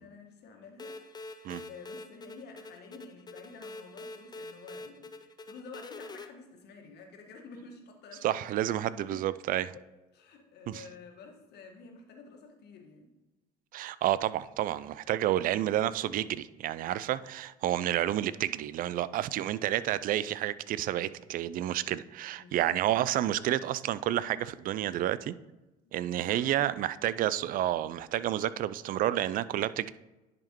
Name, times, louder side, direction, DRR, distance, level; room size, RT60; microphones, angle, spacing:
voice 1, 0.0-8.4 8.9-9.2 9.6-13.1 22.3-22.8 25.8-25.9 26.2-26.5, left 4 dB, 55° left, 3 dB, 1.6 m, -50 dB
sound 1, 0.8-6.3, left 2 dB, 20° left, 0.6 m, -45 dB
voice 2, 8.2-9.7 10.7-10.8 13.7-25.3 25.9-29.9, right 12 dB, 45° right, 16 dB, 0.4 m, -30 dB
10.5 x 5.1 x 3.0 m, 1.0 s
hypercardioid pair, 65°, 21 cm